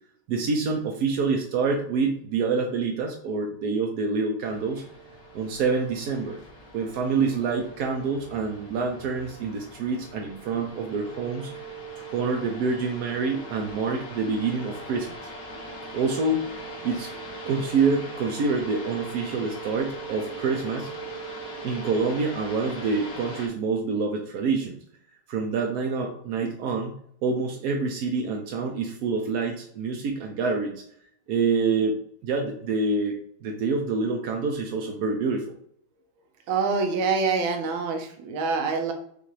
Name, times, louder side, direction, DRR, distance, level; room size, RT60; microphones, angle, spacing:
voice 1, 0.3-4.8 5.3-6.4 6.7-11.7 12.0-15.3 15.9-16.5 16.8-17.1 17.5-20.9 21.6-24.8 25.3-26.9 27.2-30.8 31.3-35.6, right 4 dB, 70° right, 1 dB, 0.9 m, -27 dB
sound 1, 4.5-23.5, right 2 dB, 50° left, 1.5 m, -40 dB
voice 2, 36.5-38.9, right 4 dB, 85° right, 3 dB, 1.5 m, -25 dB
6.5 x 2.5 x 3.1 m, 0.66 s
omnidirectional pair, 2.2 m